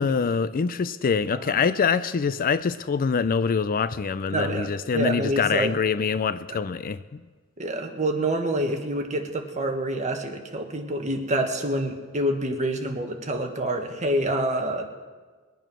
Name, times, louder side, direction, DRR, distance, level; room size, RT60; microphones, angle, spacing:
voice 1, 0.0-7.2, left 5 dB, 40° left, 15 dB, 0.4 m, -25 dB
voice 2, 4.3-5.7 6.5-6.6 7.6-14.8, right 1 dB, 35° right, 3 dB, 1.6 m, -27 dB
21.5 x 9.0 x 6.1 m, 1.4 s
head